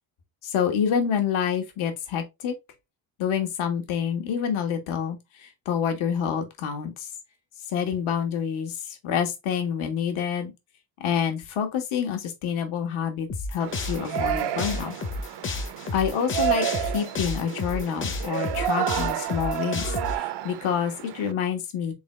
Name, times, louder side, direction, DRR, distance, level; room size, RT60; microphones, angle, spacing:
voice 1, 0.4-2.5 3.2-7.1 7.7-10.5 11.0-15.0 15.9-19.8 20.1-21.9, left 8 dB, 80° left, 1.3 m, -27 dB
sound 1, 13.3-20.1, left 3 dB, 25° left, 0.6 m, -31 dB
Yell, 13.6-21.3, right 12 dB, 55° right, 0.6 m, -30 dB
3.9 x 3.7 x 3.1 m
cardioid pair, 130°, 48 cm